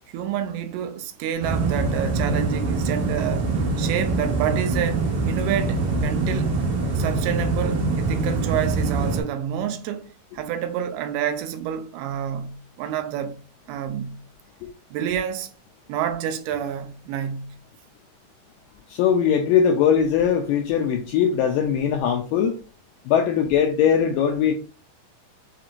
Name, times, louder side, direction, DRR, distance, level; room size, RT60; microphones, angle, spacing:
voice 1, 0.1-6.5 7.0-13.4 13.7-14.2 14.9-15.5 15.9-17.6, right 9 dB, 90° right, 2.6 m, -29 dB
sound 1, 1.4-9.2, right 3 dB, 70° right, 1.3 m, -24 dB
voice 2, 18.9-22.5 23.1-24.5, left 8 dB, 85° left, 1.9 m, -20 dB
6.8 x 2.9 x 2.5 m
omnidirectional pair, 4.4 m